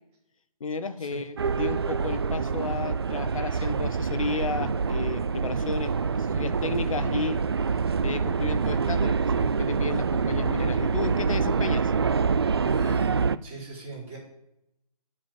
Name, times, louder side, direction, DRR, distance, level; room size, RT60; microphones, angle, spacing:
voice 1, 0.6-7.4 8.0-11.9, left 4 dB, 55° left, 10 dB, 1.2 m, -33 dB
sound 1, 1.4-13.4, right 5 dB, 40° right, 0.4 m, -26 dB
voice 2, 12.6-14.2, right 2 dB, 20° right, -6 dB, 4.9 m, -38 dB
12.5 x 5.1 x 8.8 m, 0.80 s
hypercardioid pair, 165°, 20 cm